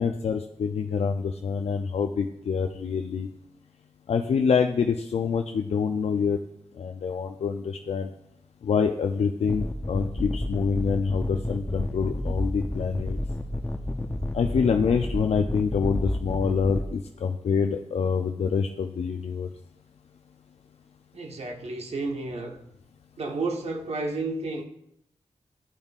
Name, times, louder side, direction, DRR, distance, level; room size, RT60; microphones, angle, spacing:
voice 1, 0.0-3.3 4.1-6.4 6.8-8.1 8.6-13.2 14.3-19.5, left 6 dB, 75° left, 0.4 m, -26 dB
sound 1, 9.5-16.9, left 1 dB, 15° left, 0.6 m, -30 dB
voice 2, 21.1-22.6 23.2-24.6, right 3 dB, 70° right, 1.1 m, -31 dB
11.5 x 5.3 x 2.4 m
cardioid pair, 60°, 11 cm